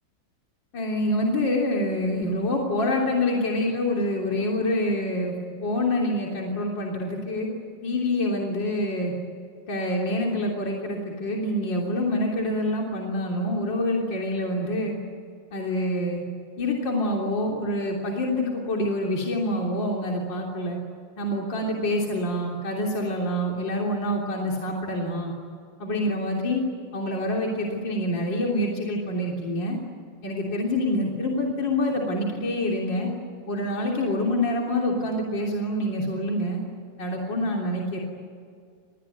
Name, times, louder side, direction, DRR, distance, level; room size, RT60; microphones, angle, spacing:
voice 1, 0.7-5.4 5.6-7.5 7.8-9.1 9.7-15.0 15.5-16.2 16.6-20.8 21.2-25.3 25.8-26.6 26.9-29.8 30.2-33.1 33.5-36.6 37.0-38.0, left 1 dB, 60° left, -1 dB, 4.0 m, -26 dB
29.0 x 20.5 x 9.3 m, 2.3 s
omnidirectional pair, 2.3 m